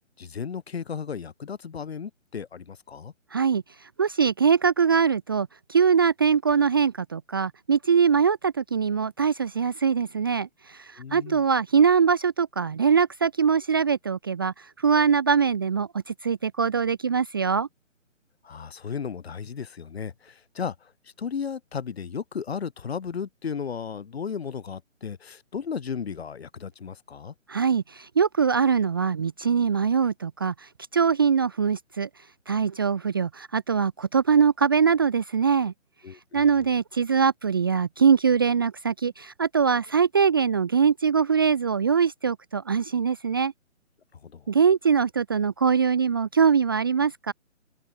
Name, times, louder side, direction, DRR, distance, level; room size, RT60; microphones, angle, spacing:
voice 1, 0.2-3.1 11.0-11.4 18.4-20.9 21.2-27.3 36.0-36.7 44.1-44.5, left 6 dB, 50° left, 3.2 m, -35 dB
voice 2, 3.3-3.6 4.0-17.7 27.5-32.1 32.5-35.7 36.3-43.5 44.5-47.3, right 6 dB, 20° right, 0.7 m, -22 dB
open air
figure-of-eight pair, 155°, 39 cm